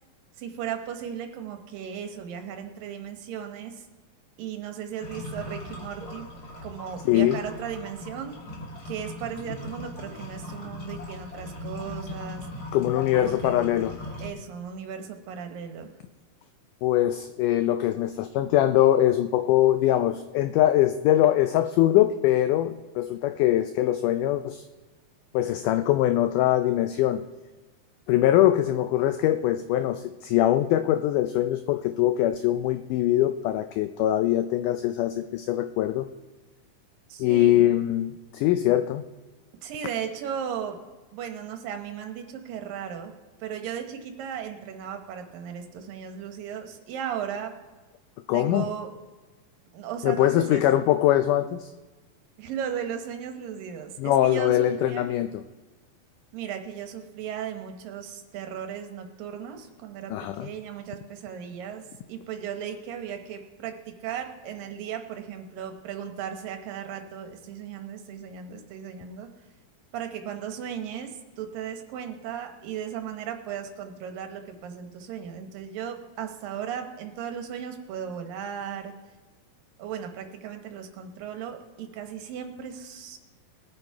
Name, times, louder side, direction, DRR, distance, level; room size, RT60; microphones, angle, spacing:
voice 1, 0.4-3.9 4.4-6.3 6.6-8.3 8.8-12.7 13.2-13.6 14.2-15.9 37.1-37.7 39.6-40.8 41.1-43.1 43.4-47.6 48.3-48.9 49.7-50.6 52.4-55.2 56.3-69.3 69.9-78.9 79.8-83.2, right 8 dB, 75° right, 5 dB, 2.7 m, -36 dB
sound 1, 5.0-14.3, left 1 dB, 30° left, 2.2 m, -39 dB
voice 2, 7.1-7.4 12.7-14.0 16.8-24.7 25.3-27.2 28.1-36.1 37.2-39.0 48.3-48.7 50.0-51.7 54.0-55.4 60.1-60.5, left 13 dB, 85° left, 10 dB, 1.8 m, -22 dB
20.5 x 7.9 x 4.7 m, 1.3 s
omnidirectional pair, 4.2 m